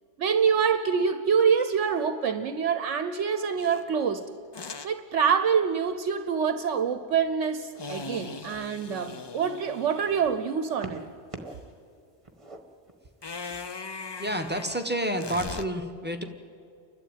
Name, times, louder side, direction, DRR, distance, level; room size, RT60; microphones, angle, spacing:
voice 1, 0.2-4.3 4.8-11.0, right 6 dB, 75° right, 9 dB, 1.1 m, -26 dB
sound 1, 3.6-3.8 4.5-4.9 7.8-10.3 13.2-15.6, left 4 dB, 40° left, 0.3 m, -40 dB
sound 2, 7.7-8.1 8.8-10.2 10.8-11.7 12.0-13.4 14.3-14.4, right 2 dB, 25° right, 1.5 m, -44 dB
voice 2, 14.2-16.2, right 1 dB, 10° right, 4 dB, 1.2 m, -30 dB
30.0 x 12.0 x 9.1 m, 2.3 s
omnidirectional pair, 1.3 m